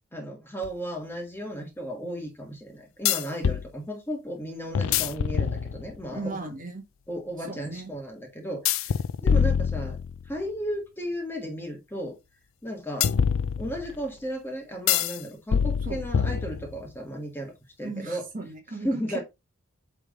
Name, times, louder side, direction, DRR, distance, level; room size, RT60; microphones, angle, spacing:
voice 1, 0.1-6.4 7.1-8.9 9.2-10.0 10.2-12.2 12.6-13.1 13.6-17.5 17.8-18.2 18.8-19.2, equal, 10° left, 1.5 m, -34 dB
sound 1, 0.6-0.7 3.1-3.7 4.7-6.1 8.7-10.4 13.0-14.0 14.9-15.2 15.5-16.9, left 7 dB, 65° left, 0.4 m, -25 dB
voice 2, 6.1-6.8 7.4-7.9 15.8-16.0 17.8-19.2, right 2 dB, 35° right, 1.7 m, -36 dB
8.7 x 3.6 x 3.7 m
head